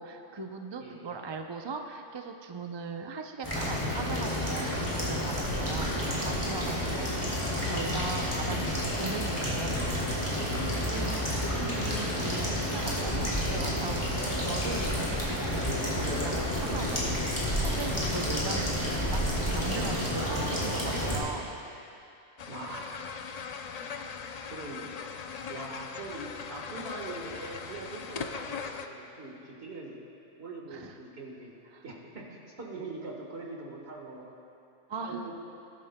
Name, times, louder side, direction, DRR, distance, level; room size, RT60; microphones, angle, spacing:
voice 1, 0.0-18.7 18.9-21.5 30.7-31.0 31.7-31.8 34.9-35.3, right 4 dB, 40° right, 4 dB, 0.4 m, -39 dB
voice 2, 0.8-1.1 6.6-6.9 10.5-10.8 22.5-22.9 24.4-24.9 25.5-30.0 30.4-31.5 31.8-34.3 34.9-35.3, right 3 dB, 55° right, -1 dB, 1.7 m, -42 dB
sound 1, 3.4-21.2, equal, 10° left, 2.7 m, -30 dB
sound 2, 22.4-28.9, left 6 dB, 60° left, 0.4 m, -40 dB
19.0 x 11.0 x 2.2 m, 2.7 s
omnidirectional pair, 1.2 m